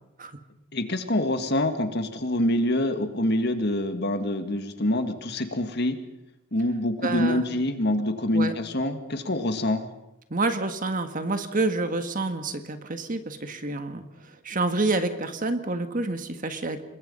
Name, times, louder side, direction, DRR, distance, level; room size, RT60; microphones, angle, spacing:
voice 1, 0.7-6.0 6.5-9.9, left 1 dB, 50° left, 7 dB, 2.0 m, -26 dB
voice 2, 7.0-7.4 8.3-8.5 10.3-16.8, right 2 dB, 40° right, 8 dB, 1.6 m, -28 dB
27.5 x 21.5 x 5.5 m, 0.89 s
head